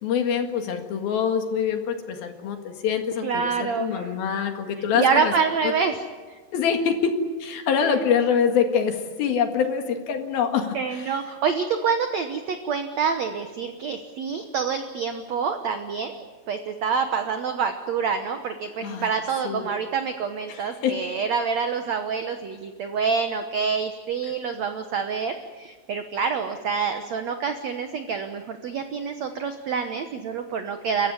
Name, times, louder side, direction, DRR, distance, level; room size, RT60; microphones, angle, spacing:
voice 1, 0.0-5.3 5.6-5.7 6.5-7.1 7.4-11.2 18.8-19.1 19.4-19.7 20.5-21.0 24.2-24.3, left 7 dB, 65° left, 5 dB, 3.6 m, -25 dB
voice 2, 3.2-4.1 4.9-6.0 6.3-6.4 7.8-7.9 10.7-31.1, right 6 dB, 80° right, 7 dB, 1.5 m, -27 dB
30.0 x 15.0 x 9.7 m, 1.4 s
omnidirectional pair, 4.8 m